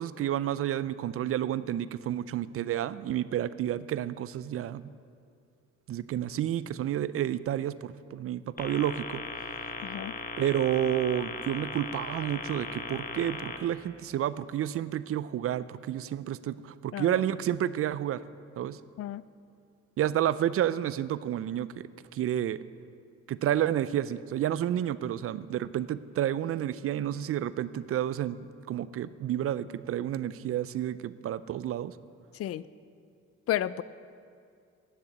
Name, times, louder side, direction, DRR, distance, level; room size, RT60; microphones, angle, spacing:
voice 1, 0.0-4.9 5.9-9.2 10.4-18.2 18.6-18.8 20.0-21.8 22.1-22.6 23.3-28.4 28.7-32.0, right 11 dB, 50° right, 16 dB, 0.4 m, -30 dB
sound 1, 8.6-13.6, left 4 dB, 30° left, 1.0 m, -38 dB
voice 2, 9.8-10.1 16.9-17.2 19.0-19.2 32.3-32.6 33.5-33.8, left 13 dB, 55° left, 18 dB, 0.4 m, -32 dB
10.0 x 6.7 x 8.1 m, 2.4 s
cardioid pair, 85°, 30 cm